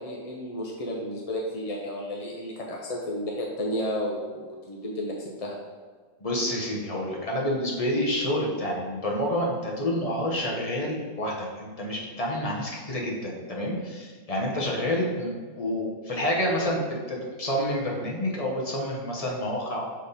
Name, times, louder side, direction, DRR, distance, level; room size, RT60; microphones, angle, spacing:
voice 1, 0.0-5.6, left 1 dB, 50° left, -2 dB, 0.4 m, -32 dB
voice 2, 6.2-19.9, equal, 30° left, -2 dB, 1.0 m, -28 dB
6.5 x 3.5 x 4.1 m, 1.5 s
omnidirectional pair, 1.5 m